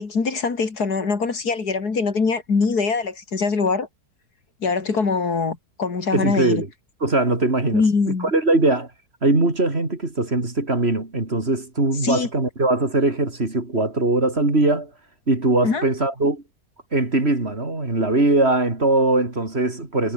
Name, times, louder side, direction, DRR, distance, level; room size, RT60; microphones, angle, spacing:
voice 1, 0.0-3.9 4.6-6.6 7.7-8.3 12.0-12.3 15.6-15.8, left 4 dB, 75° left, 3.3 m, -23 dB
voice 2, 6.1-6.7 7.0-8.9 9.2-14.9 15.3-16.4 16.9-20.1, right 2 dB, 40° right, 3.9 m, -21 dB
omnidirectional pair, 1.7 m